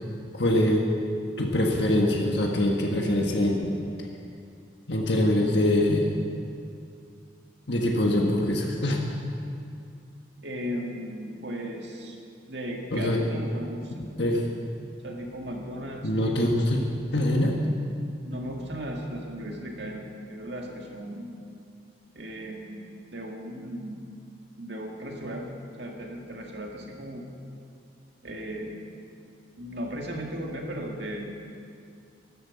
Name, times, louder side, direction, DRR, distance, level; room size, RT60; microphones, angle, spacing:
voice 1, 0.3-0.8 1.4-3.7 4.9-6.1 7.7-9.0 12.9-13.2 14.2-14.4 16.0-16.8 17.1-17.6, left 1 dB, 70° left, 0 dB, 1.5 m, -23 dB
voice 2, 10.4-12.2 12.5-14.1 15.0-16.7 18.2-21.4 22.1-24.0 24.6-25.5 25.8-27.2 28.2-28.8 29.6-31.3, equal, 65° right, 0 dB, 2.1 m, -36 dB
13.0 x 12.0 x 7.4 m, 2.4 s
head